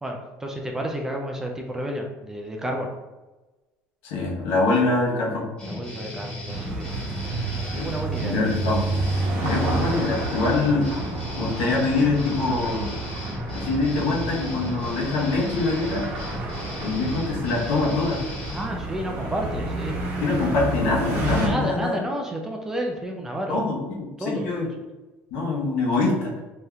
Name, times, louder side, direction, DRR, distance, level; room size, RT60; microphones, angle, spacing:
voice 1, 0.0-2.9 5.7-8.6 18.5-20.4 21.4-23.6 24.2-24.7, right 1 dB, 10° right, 1 dB, 0.3 m, -31 dB
voice 2, 4.0-5.5 7.7-7.9 8.2-8.9 9.4-10.9 11.3-12.9 13.5-16.0 16.8-18.2 20.2-22.0 23.5-24.7 25.3-26.3, left 3 dB, 80° left, -3 dB, 1.0 m, -24 dB
sound 1, 5.6-18.7, left 1 dB, 20° left, 1.1 m, -36 dB
sound 2, 6.5-21.5, right 2 dB, 55° right, 0.8 m, -30 dB
3.4 x 2.7 x 2.3 m, 1.1 s
cardioid pair, 160°, 5 cm